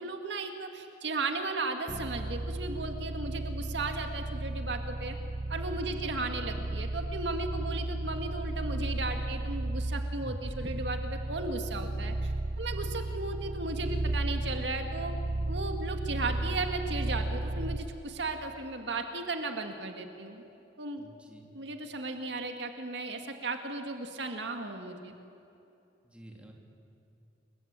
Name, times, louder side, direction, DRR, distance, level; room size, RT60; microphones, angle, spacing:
voice 1, 0.0-5.2 5.5-15.1 15.5-20.4 20.8-21.0 21.5-25.1, right 3 dB, 70° right, 5 dB, 2.2 m, -36 dB
sound 1, 1.9-18.0, right 2 dB, 30° right, 0.7 m, -34 dB
voice 2, 5.7-6.1 21.0-21.5 26.0-26.5, right 1 dB, 5° right, 0 dB, 3.5 m, -52 dB
29.0 x 23.0 x 9.0 m, 2.8 s
head